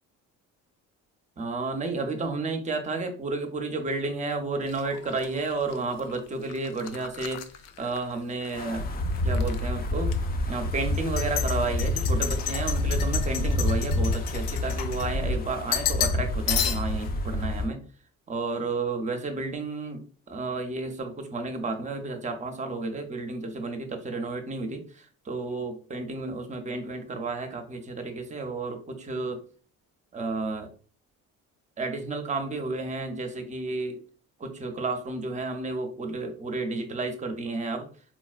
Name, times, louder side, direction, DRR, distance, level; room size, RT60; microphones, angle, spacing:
voice 1, 1.4-7.4 7.8-8.9 9.2-10.2 10.5-17.8 18.3-20.0 20.3-29.4 30.1-30.7 31.8-34.0 34.4-37.9, right 3 dB, 20° right, 6 dB, 0.5 m, -32 dB
sound 1, 4.7-8.6 8.9-9.6 10.1-10.2 10.9-15.4 15.7-16.2 16.5-17.1, left 10 dB, 90° left, 0.5 m, -33 dB
Wind, 8.5-17.7, left 1 dB, 30° left, 0.4 m, -28 dB
4.0 x 2.1 x 2.4 m, 0.41 s
cardioid pair, 110°, 33 cm